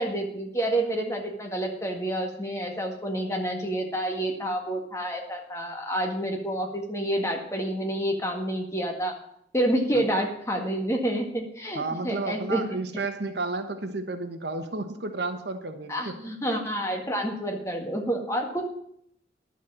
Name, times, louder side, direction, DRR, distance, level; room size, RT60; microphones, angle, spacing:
voice 1, 0.0-9.1 9.5-12.6 15.9-18.6, right 1 dB, 15° left, 2 dB, 1.8 m, -28 dB
voice 2, 11.7-16.2 16.5-16.6, right 3 dB, 65° right, 8 dB, 1.2 m, -32 dB
11.0 x 7.5 x 7.3 m, 0.70 s
head